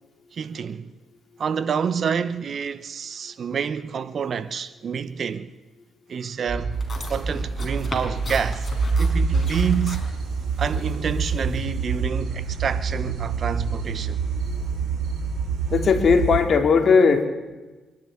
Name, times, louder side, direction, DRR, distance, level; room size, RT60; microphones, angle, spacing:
voice 1, 0.3-0.9 1.4-5.5 6.1-6.8 7.1-8.7 9.0-10.1 10.6-14.2, right 7 dB, 50° right, 1.0 m, -28 dB
sound 1, 6.5-16.4, right 5 dB, 70° right, 6.1 m, -26 dB
sound 2, 6.7-12.0, left 3 dB, 30° left, 5.1 m, -38 dB
voice 2, 15.7-17.3, left 5 dB, 50° left, 2.9 m, -17 dB
24.0 x 12.0 x 10.0 m
cardioid pair, 90°, 0 cm